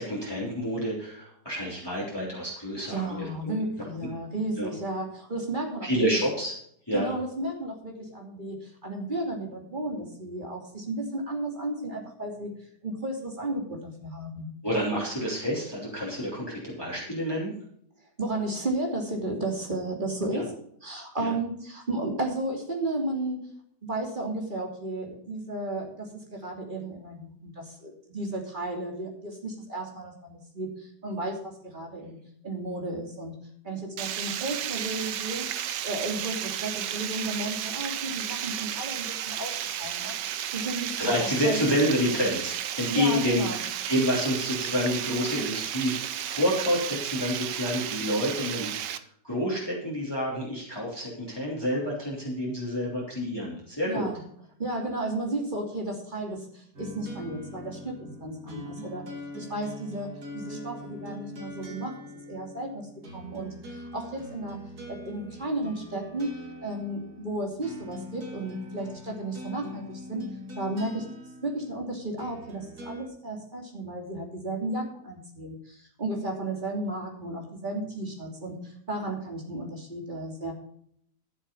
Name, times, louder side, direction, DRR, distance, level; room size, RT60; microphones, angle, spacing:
voice 1, 0.0-3.6 4.6-4.7 5.8-6.5 6.9-7.1 14.6-17.5 20.3-20.4 21.2-21.3 41.0-54.1, equal, 15° left, -5 dB, 3.3 m, -28 dB
voice 2, 2.9-5.9 6.9-12.5 12.8-14.4 18.2-23.5 23.8-32.2 32.4-33.3 33.6-35.5 35.8-40.2 40.5-41.0 41.4-41.6 42.9-43.6 53.8-54.2 54.6-59.0 59.4-61.9 62.3-64.6 64.9-66.3 66.6-70.2 70.6-71.1 71.4-80.5, right 2 dB, 25° right, 1 dB, 3.0 m, -33 dB
Water, 34.0-49.0, right 10 dB, 85° right, 1.4 m, -33 dB
sound 1, 56.7-73.1, left 1 dB, 60° right, 2.8 m, -42 dB
13.0 x 7.2 x 5.5 m, 0.66 s
omnidirectional pair, 1.8 m